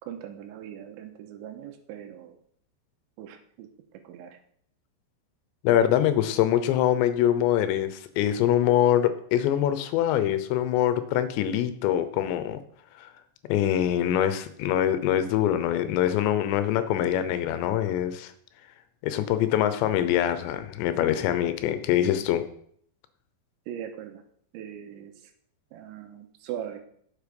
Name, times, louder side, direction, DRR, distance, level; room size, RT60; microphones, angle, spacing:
voice 1, 0.0-2.4 3.2-4.4 19.1-19.6 23.7-24.2 24.5-25.1 25.7-26.8, right 10 dB, 90° right, 5 dB, 3.4 m, -40 dB
voice 2, 5.6-12.6 13.0-13.1 13.5-18.3 19.0-22.5, left 11 dB, 80° left, 11 dB, 3.0 m, -24 dB
9.6 x 7.2 x 5.3 m, 0.64 s
omnidirectional pair, 5.2 m